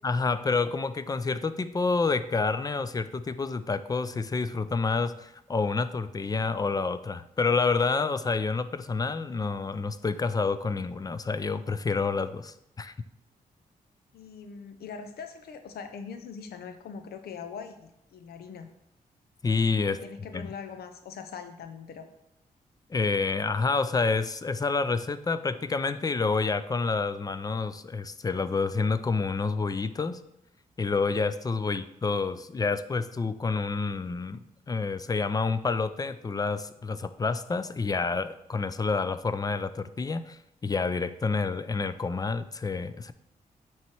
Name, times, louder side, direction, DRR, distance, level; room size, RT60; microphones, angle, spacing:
voice 1, 0.0-12.9 19.4-20.0 20.3-20.5 22.9-30.2 30.8-43.1, left 4 dB, 25° left, 12 dB, 0.4 m, -28 dB
voice 2, 14.1-18.7 19.8-22.1 31.6-31.7, left 6 dB, 90° left, 8 dB, 0.6 m, -42 dB
8.6 x 3.1 x 4.6 m, 0.82 s
cardioid pair, 95°, 16 cm